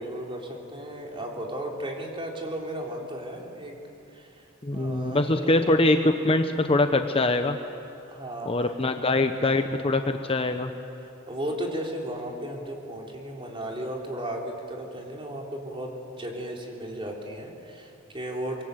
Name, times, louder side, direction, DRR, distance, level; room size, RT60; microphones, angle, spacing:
voice 1, 0.0-3.8 4.1-4.5 4.7-5.7 8.1-8.7 11.0-18.6, right 1 dB, 25° right, -1 dB, 3.7 m, -35 dB
voice 2, 4.6-7.6 8.5-10.7, left 2 dB, 30° left, 7 dB, 0.9 m, -23 dB
25.5 x 23.5 x 8.0 m, 2.7 s
head